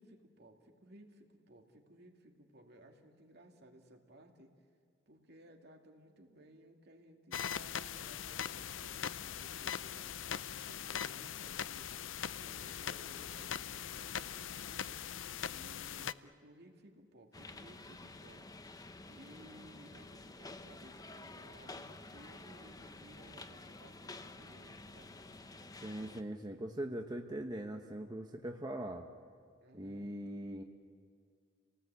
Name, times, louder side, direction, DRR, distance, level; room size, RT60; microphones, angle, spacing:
voice 1, 0.0-4.5 5.1-10.2 10.6-11.9 12.3-15.0 15.5-18.5 19.0-25.2 29.6-30.1, right 1 dB, 60° right, 3 dB, 2.6 m, -59 dB
sound 1, 7.3-16.1, left 9 dB, 85° left, 0.6 m, -41 dB
sound 2, 17.3-26.2, left 2 dB, 20° left, 0.9 m, -51 dB
voice 2, 25.8-29.1 29.7-30.6, right 1 dB, 20° right, 3 dB, 1.0 m, -41 dB
30.0 x 18.5 x 8.3 m, 2.1 s
head